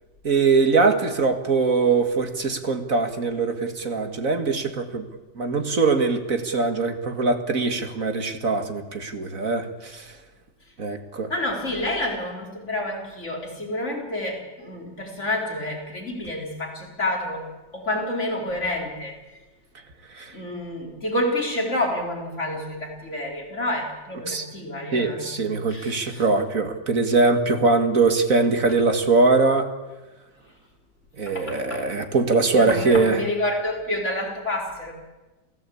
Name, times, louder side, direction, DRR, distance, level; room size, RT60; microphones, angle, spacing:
voice 1, 0.2-5.1 5.4-10.1 10.8-11.3 20.1-20.3 24.3-24.5 24.9-29.7 31.2-33.2, right 3 dB, 50° right, 7 dB, 2.2 m, -22 dB
voice 2, 11.3-17.5 17.7-19.2 20.3-26.2 31.3-31.9 32.5-34.9, left 1 dB, 40° left, 1 dB, 4.6 m, -29 dB
28.5 x 16.0 x 8.5 m, 1.2 s
omnidirectional pair, 2.0 m